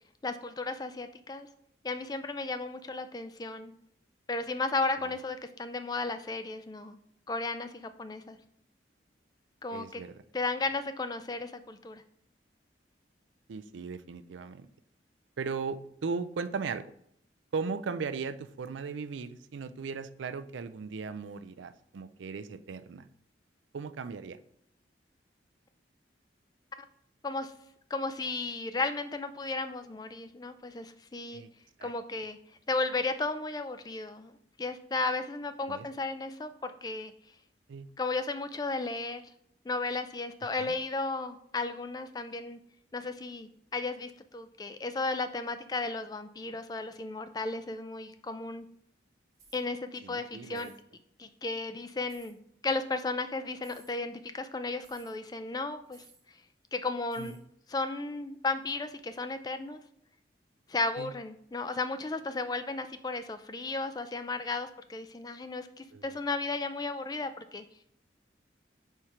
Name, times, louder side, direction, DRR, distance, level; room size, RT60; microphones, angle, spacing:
voice 1, 0.2-1.5 1.8-3.7 4.3-7.0 7.3-8.4 9.6-10.0 10.3-12.0 27.2-27.5 27.9-31.4 31.8-32.4 32.7-34.3 34.6-37.1 38.0-39.2 39.6-42.6 42.9-48.7 49.5-50.7 51.2-52.4 52.6-56.0 56.7-57.4 57.7-59.8 60.7-67.6, left 3 dB, 20° left, 10 dB, 0.3 m, -34 dB
voice 2, 9.7-10.2 13.5-14.7 15.4-16.9 17.5-23.1 23.7-24.4 31.3-31.5 31.8-31.9 35.7-35.9 37.7-37.9 40.6-40.7 50.0-50.7 57.2-57.4 61.0-61.1 65.9-66.0, right 5 dB, 85° right, 12 dB, 0.4 m, -37 dB
sound 1, 49.3-49.6 50.5-50.8 52.1-52.3 53.6-53.9 54.8-55.1 55.9-56.2 57.1-57.4, right 4 dB, 20° right, 1.2 m, -58 dB
4.5 x 4.4 x 4.9 m, 0.70 s
head